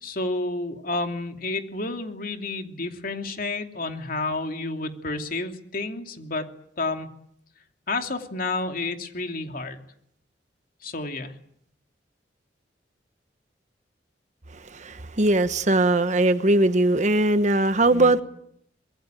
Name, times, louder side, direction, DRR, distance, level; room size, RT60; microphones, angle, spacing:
voice 1, 0.0-6.5 6.8-7.1 7.9-9.8 10.8-11.3 17.9-18.1, left 2 dB, 50° left, 2.8 m, -30 dB
voice 2, 14.7-18.2, right 2 dB, 40° right, 1.2 m, -20 dB
25.5 x 22.0 x 9.2 m
head